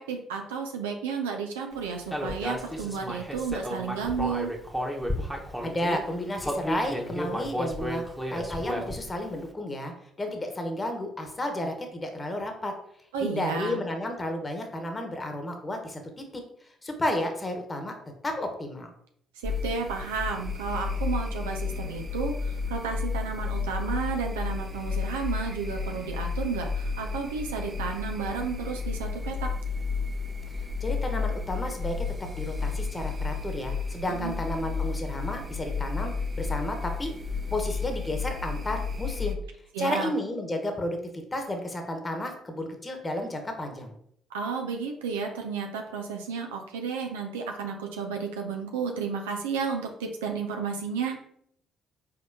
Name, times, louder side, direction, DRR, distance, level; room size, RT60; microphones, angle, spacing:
voice 1, 0.0-4.5 13.1-13.8 19.4-29.5 34.1-34.4 39.7-40.1 44.3-51.2, right 5 dB, 85° right, 3 dB, 0.5 m, -32 dB
Human voice, 2.1-6.0 6.4-9.1, equal, 5° right, 1.1 m, -32 dB
voice 2, 5.6-9.9 10.2-12.7 13.2-16.3 16.8-17.9 18.2-18.9 30.5-32.1 32.3-37.1 37.5-39.4 39.8-43.9, left 1 dB, 25° left, 4 dB, 1.1 m, -32 dB
sound 1, 19.4-39.4, left 5 dB, 35° right, 0.8 m, -32 dB
5.0 x 3.8 x 2.7 m, 0.68 s
hypercardioid pair, 50°, 0 cm